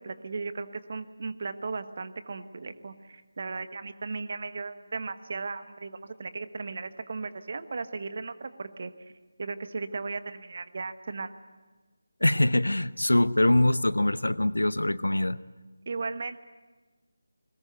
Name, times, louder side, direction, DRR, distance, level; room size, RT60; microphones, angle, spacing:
voice 1, 0.0-8.9 9.4-11.3 15.9-16.4, right 4 dB, 40° right, 11 dB, 1.2 m, -36 dB
voice 2, 12.2-15.4, left 1 dB, 70° left, 17 dB, 0.8 m, -23 dB
21.0 x 20.5 x 9.2 m, 1.3 s
figure-of-eight pair, 160°, 0 cm